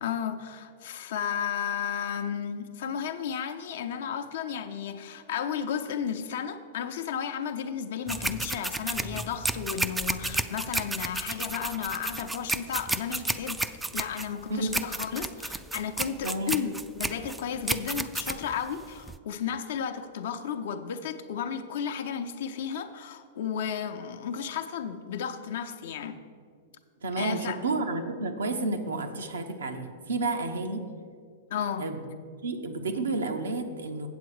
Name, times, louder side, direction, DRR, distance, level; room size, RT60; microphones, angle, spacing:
voice 1, 0.0-13.6 13.9-26.2 27.2-27.6 31.5-31.9, left 8 dB, 65° left, 8 dB, 0.6 m, -33 dB
sound 1, 8.1-19.2, right 2 dB, 10° right, 0.3 m, -32 dB
voice 2, 27.0-30.8 31.8-32.0 32.4-34.1, right 2 dB, 80° right, 5 dB, 0.8 m, -31 dB
8.0 x 7.7 x 4.8 m, 2.1 s
hypercardioid pair, 105°, 0 cm